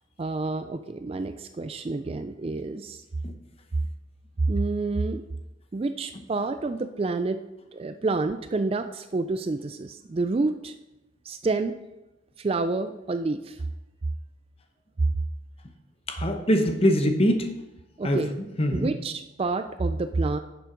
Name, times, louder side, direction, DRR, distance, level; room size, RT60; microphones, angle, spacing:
voice 1, 0.2-3.0 4.5-5.2 5.7-7.4 7.7-10.7 11.3-11.7 12.4-13.6 18.0-18.3 18.7-20.4, right 3 dB, 30° right, 9 dB, 0.3 m, -28 dB
voice 2, 16.1-17.5 18.0-18.2 18.6-18.9, equal, 30° left, 6 dB, 0.8 m, -23 dB
10.5 x 7.0 x 3.8 m, 0.96 s
head